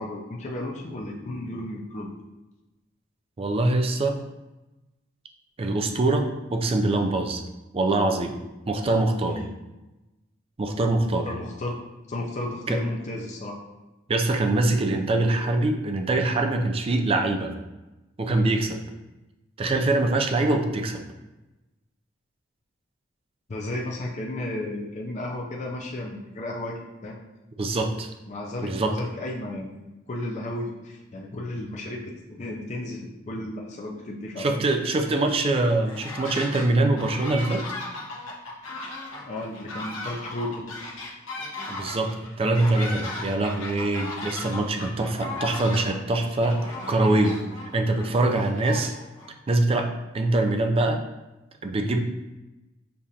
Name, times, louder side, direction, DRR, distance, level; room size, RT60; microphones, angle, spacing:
voice 1, 0.0-2.1 9.3-9.5 11.2-11.8 12.1-13.6 23.5-27.2 28.3-34.6 39.2-40.6, left 1 dB, 35° left, -2 dB, 0.5 m, -33 dB
voice 2, 3.4-4.2 5.6-7.4 7.7-8.4 8.7-9.4 10.6-11.3 12.7-12.8 14.1-17.5 18.2-18.8 19.6-21.0 27.6-28.1 28.6-29.0 34.4-37.7 41.7-47.4 47.7-48.9 49.5-51.0 51.6-52.0, right 2 dB, 30° right, 4 dB, 0.4 m, -24 dB
sound 1, 35.7-36.7 37.0-49.3, left 2 dB, 90° left, 1.0 m, -36 dB
6.7 x 2.5 x 2.8 m, 1.0 s
head